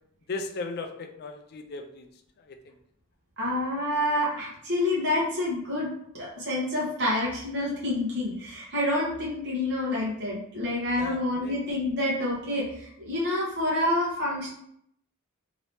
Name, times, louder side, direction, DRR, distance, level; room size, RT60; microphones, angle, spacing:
voice 1, 0.3-2.1 2.4-2.8 11.0-11.6, left 3 dB, 45° left, 6 dB, 0.4 m, -37 dB
voice 2, 3.4-14.5, left 1 dB, 50° right, -6 dB, 1.0 m, -28 dB
2.9 x 2.7 x 3.3 m, 0.72 s
head